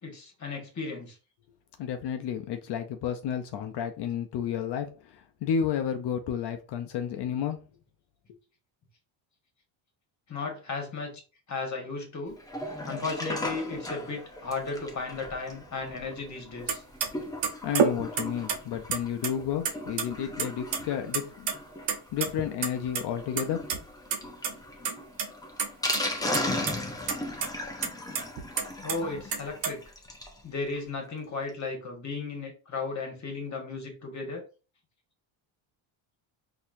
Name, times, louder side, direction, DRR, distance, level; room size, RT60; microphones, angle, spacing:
voice 1, 0.0-1.2 10.3-11.2 11.5-12.4 12.8-16.8 28.8-29.8 30.4-34.4, left 4 dB, 35° left, 1.5 m, -35 dB
voice 2, 1.8-7.6 17.6-21.5 22.1-23.6, left 8 dB, 55° left, 0.6 m, -31 dB
Sink (filling or washing), 12.4-30.4 30.8-30.9 31.0-31.1 31.5-31.6, left 1 dB, 10° left, 0.6 m, -37 dB
sound 1, 16.7-16.8 17.0-17.1 17.4-18.6 18.9-19.7 20.0-20.1 20.4-20.8 21.1-21.5 21.9-23.0 23.4-23.8 24.1-24.2 24.4-24.5 24.8-25.3 25.6-26.0 26.3-26.7 27.1-27.2 27.4-27.5 27.8-29.0 29.3-29.7, right 6 dB, 65° right, 1.0 m, -28 dB
4.2 x 2.8 x 2.6 m
cardioid pair, 115°, 48 cm